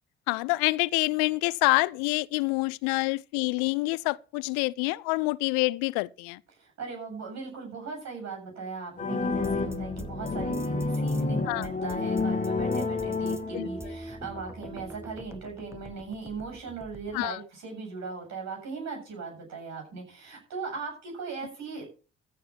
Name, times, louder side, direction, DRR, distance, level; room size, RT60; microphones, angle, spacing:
voice 1, 0.3-6.4 11.5-11.7 13.5-13.7 17.1-17.4, left 24 dB, 70° left, 0.6 m, -27 dB
voice 2, 6.5-21.8, right 4 dB, 60° right, 7.6 m, -38 dB
sound 1, 9.0-13.9, left 3 dB, 25° left, 1.9 m, -29 dB
sound 2, 9.3-17.3, right 1 dB, 10° right, 1.7 m, -43 dB
14.5 x 6.7 x 7.2 m
figure-of-eight pair, 45°, 31 cm